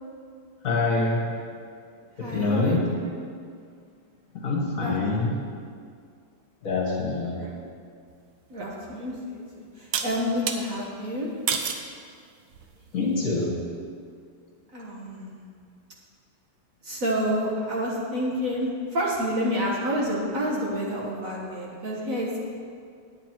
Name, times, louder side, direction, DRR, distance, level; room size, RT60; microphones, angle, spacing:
voice 1, 0.6-1.3 2.2-2.9 4.3-5.4 6.6-7.4 12.9-13.7, left 3 dB, 45° left, -3 dB, 1.6 m, -25 dB
voice 2, 2.2-3.1 4.8-4.9 7.3-7.5 8.5-9.4 9.8-11.3 14.7-15.4 16.8-22.4, equal, 45° right, -4 dB, 1.6 m, -29 dB
sound 1, 8.6-8.7 9.9-10.6 11.5-11.9 12.5-12.9, right 7 dB, 65° right, 1.0 m, -28 dB
9.5 x 9.0 x 4.5 m, 2.2 s
omnidirectional pair, 2.1 m